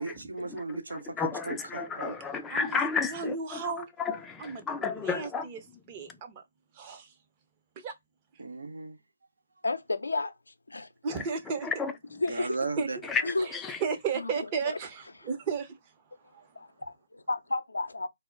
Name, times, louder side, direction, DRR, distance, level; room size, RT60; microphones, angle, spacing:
voice 1, 0.0-1.2 1.4-2.2 8.4-9.0 12.3-13.0, right 3 dB, 75° right, 0.7 m, -36 dB
voice 2, 0.9-3.6 4.0-5.5 11.1-11.2 11.6-11.9 13.1-13.2 13.5-13.8, left 5 dB, 10° left, 0.4 m, -32 dB
voice 3, 3.1-3.9 4.4-5.6 5.9-6.4 6.8-7.1 7.8-7.9 11.0-11.7 12.3-12.5 12.8-12.9 13.4-13.5 13.8-15.8 16.3-16.5, right 5 dB, 25° right, 0.6 m, -34 dB
voice 4, 9.6-10.3 10.7-10.9 12.2-12.6 13.2-13.5 14.2-14.3 14.6-14.8 16.6-18.1, left 2 dB, 80° left, 0.5 m, -31 dB
2.2 x 2.0 x 3.7 m
figure-of-eight pair, 145°, 0 cm